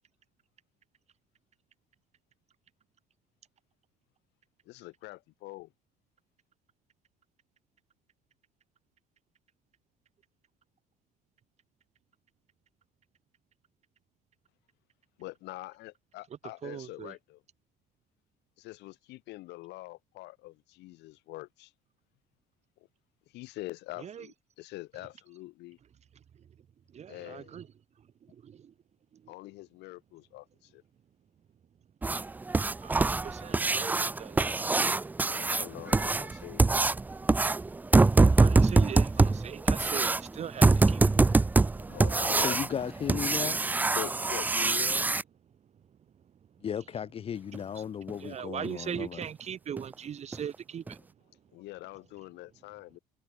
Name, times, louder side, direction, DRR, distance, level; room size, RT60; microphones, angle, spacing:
voice 1, 4.7-5.7 15.2-17.4 18.6-21.7 23.3-25.8 27.1-27.6 29.3-30.8 35.2-37.0 41.7-42.9 43.9-45.2 51.5-53.0, left 19 dB, 75° left, 2.5 m, -44 dB
voice 2, 16.3-17.2 24.0-24.3 26.1-26.5 26.9-27.7 28.0-28.7 29.1-29.3 32.8-35.2 37.1-41.8 45.6-47.0 47.6-51.4, right 8 dB, 40° right, 1.2 m, -42 dB
sound 1, 32.0-45.2 47.5-47.6 48.1-48.2 48.6-48.7 49.2-49.3 49.8-49.9 50.3-50.4 50.9-51.0, right 3 dB, 10° right, 0.3 m, -24 dB
voice 3, 42.4-43.6 46.6-49.1, left 8 dB, 35° left, 0.6 m, -35 dB
cardioid pair, 105°, 18 cm